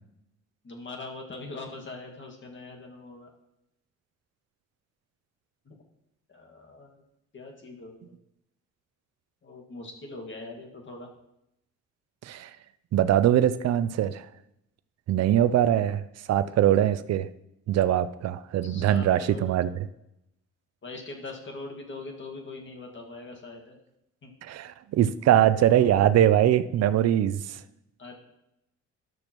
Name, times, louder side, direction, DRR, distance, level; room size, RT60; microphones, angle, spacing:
voice 1, 0.6-3.3 5.7-5.8 6.3-6.9 7.3-8.2 9.4-11.1 18.6-19.7 20.8-23.8 24.2-24.3 28.0-28.1, left 3 dB, 40° left, 2 dB, 1.9 m, -42 dB
voice 2, 12.9-14.3 15.1-17.3 17.7-19.7 24.4-27.6, right 11 dB, 55° right, 13 dB, 0.5 m, -22 dB
12.5 x 6.4 x 3.0 m, 0.83 s
cardioid pair, 90°, 30 cm